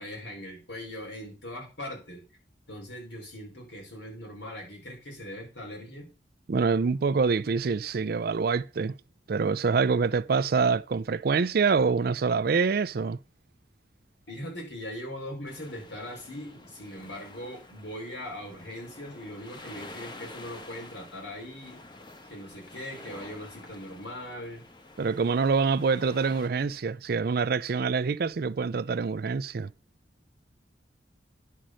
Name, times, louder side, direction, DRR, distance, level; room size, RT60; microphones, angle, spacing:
voice 1, 0.0-2.2 2.7-6.1 14.3-21.8 22.3-24.7, left 1 dB, 85° left, 5.2 m, -40 dB
voice 2, 6.5-9.0 9.3-13.2 25.0-29.7, right 5 dB, 60° right, 0.4 m, -25 dB
sound 1, 15.5-26.5, left 2 dB, 25° left, 1.2 m, -48 dB
10.5 x 5.4 x 6.3 m
head